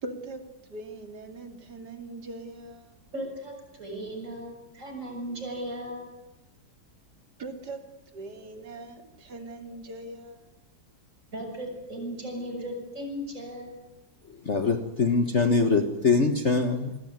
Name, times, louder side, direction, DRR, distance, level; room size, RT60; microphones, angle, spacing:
voice 1, 0.0-0.4 0.7-2.9 7.4-7.8 8.1-10.4, right 2 dB, 55° right, 7 dB, 3.2 m, -40 dB
voice 2, 3.1-6.1 11.3-13.8, equal, 40° right, 2 dB, 7.4 m, -36 dB
voice 3, 14.4-17.0, left 4 dB, 40° left, 7 dB, 1.6 m, -23 dB
28.0 x 21.0 x 9.5 m, 1.0 s
omnidirectional pair, 2.1 m